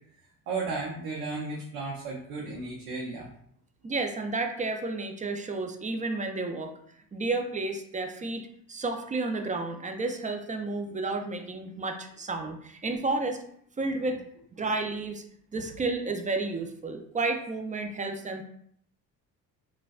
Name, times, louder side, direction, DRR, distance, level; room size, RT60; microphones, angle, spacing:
voice 1, 0.5-3.3 15.5-15.6, right 3 dB, 90° right, -4 dB, 0.7 m, -34 dB
voice 2, 3.8-6.7 7.1-13.4 13.8-14.2 14.6-15.2 15.5-18.4, right 3 dB, 20° right, 5 dB, 0.3 m, -31 dB
4.0 x 2.2 x 2.3 m, 0.66 s
hypercardioid pair, 60°, 45 cm